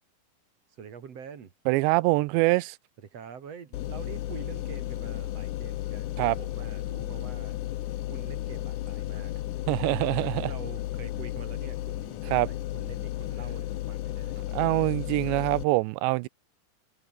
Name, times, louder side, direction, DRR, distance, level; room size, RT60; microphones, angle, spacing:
voice 1, 0.7-1.5 3.0-7.6 8.0-9.3 9.9-14.4, right 7 dB, 45° right, 2.7 m, -45 dB
voice 2, 1.7-2.8 6.2-6.4 9.7-10.5 12.3-12.5 14.5-16.3, right 23 dB, 85° right, 2.8 m, -24 dB
sound 1, 3.7-15.6, left 14 dB, 80° left, 1.8 m, -34 dB
omnidirectional pair, 5.1 m